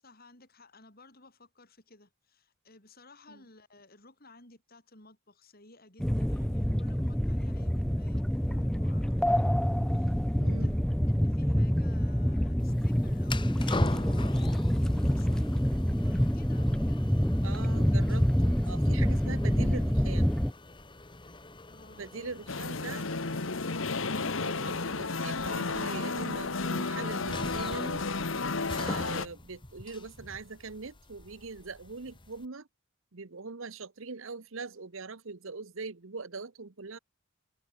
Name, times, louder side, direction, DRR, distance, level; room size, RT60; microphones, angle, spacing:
voice 1, 0.0-10.7 11.1-17.1 21.7-23.4, left 2 dB, 45° left, 7.9 m, -57 dB
sound 1, 6.0-20.5, equal, 5° left, 0.5 m, -27 dB
voice 2, 10.4-10.8 17.4-20.3 22.0-23.0 24.2-28.0 28.7-32.7 33.1-37.0, right 4 dB, 65° right, 1.0 m, -42 dB
sound 2, 12.6-32.5, left 2 dB, 20° left, 1.6 m, -43 dB
sound 3, 22.5-29.3, left 3 dB, 60° left, 1.4 m, -32 dB
open air
head